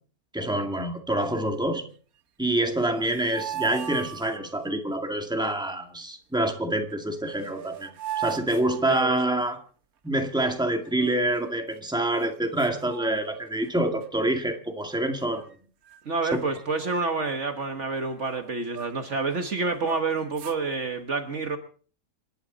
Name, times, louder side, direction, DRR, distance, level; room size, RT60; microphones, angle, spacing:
voice 1, 0.3-1.9 2.4-9.6 10.0-15.4 16.3-16.4, right 1 dB, 5° right, 2.1 m, -26 dB
sound 1, 2.7-4.7 6.9-7.0 7.3-9.5 10.8-11.7 12.2-12.3 12.6-13.7 14.0-14.3 14.9-15.5 15.8-16.0 16.3-19.2 19.6-20.6, right 10 dB, 75° right, 1.5 m, -39 dB
voice 2, 16.0-21.6, right 3 dB, 55° right, 1.7 m, -28 dB
27.5 x 11.5 x 4.0 m
omnidirectional pair, 1.6 m